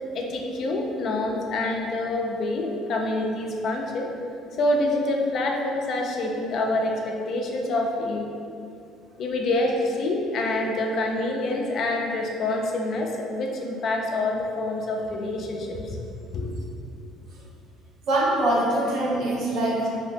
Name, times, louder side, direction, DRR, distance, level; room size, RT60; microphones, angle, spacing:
voice 1, 0.1-4.1 4.5-8.3 9.2-16.0 16.3-16.5, left 2 dB, 60° left, 1 dB, 0.5 m, -26 dB
voice 2, 18.1-19.9, right 1 dB, 70° right, -5 dB, 0.8 m, -23 dB
2.8 x 2.7 x 3.5 m, 2.5 s
supercardioid pair, 90°, 0 cm